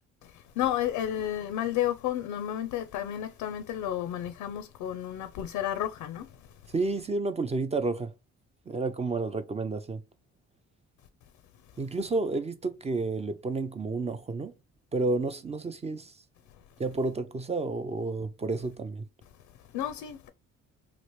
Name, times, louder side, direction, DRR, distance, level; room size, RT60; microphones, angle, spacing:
voice 1, 0.2-6.7 19.2-20.3, left 11 dB, 85° left, 0.4 m, -32 dB
voice 2, 6.7-8.1 8.7-10.0 11.8-14.5 14.9-16.1 16.8-19.0, right 3 dB, 20° right, 0.3 m, -30 dB
3.0 x 2.5 x 3.0 m
cardioid pair, 90°, 30 cm